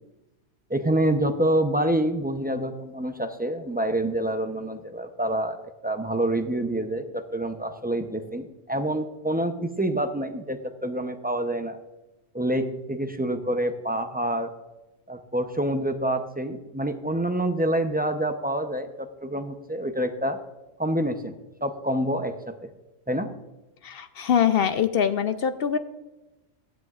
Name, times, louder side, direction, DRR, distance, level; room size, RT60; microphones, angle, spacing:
voice 1, 0.7-11.8 12.3-14.5 15.1-20.4 20.8-21.3 21.6-22.7 23.1-23.3, right 1 dB, 10° right, 6 dB, 0.4 m, -27 dB
voice 2, 23.8-25.8, left 8 dB, 65° left, 11 dB, 0.8 m, -23 dB
15.5 x 10.0 x 2.4 m, 1.0 s
omnidirectional pair, 1.2 m